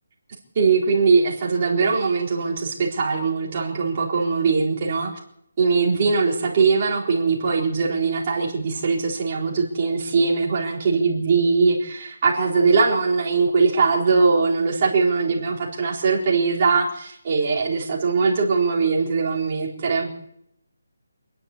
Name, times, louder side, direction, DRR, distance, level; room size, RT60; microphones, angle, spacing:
voice 1, 0.5-5.1 5.6-20.1, right 4 dB, 25° right, -3 dB, 4.1 m, -21 dB
27.5 x 11.0 x 8.5 m, 0.77 s
hypercardioid pair, 180°, 0 cm